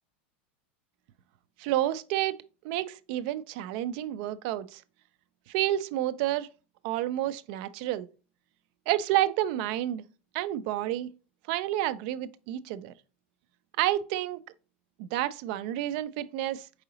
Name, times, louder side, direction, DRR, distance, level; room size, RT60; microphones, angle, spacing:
voice 1, 1.6-2.4 2.6-4.8 5.5-6.5 6.8-8.1 8.9-10.0 10.3-11.1 11.5-12.9 13.8-14.4 15.0-16.7, right 13 dB, 55° right, 0.3 m, -29 dB
4.7 x 3.8 x 2.8 m
supercardioid pair, 145°, 6 cm